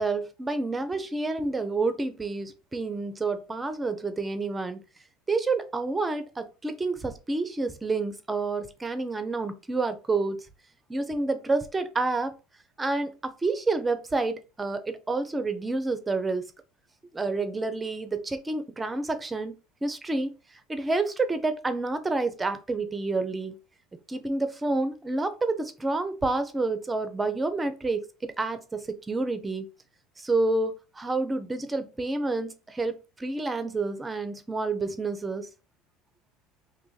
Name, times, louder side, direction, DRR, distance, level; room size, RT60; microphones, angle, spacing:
voice 1, 0.0-4.8 5.3-10.4 10.9-12.3 12.8-16.5 17.1-19.5 19.8-20.3 20.7-23.6 24.1-29.7 30.2-35.5, right 3 dB, 15° right, 0.6 m, -29 dB
2.7 x 2.5 x 4.0 m
hypercardioid pair, 85°, 0 cm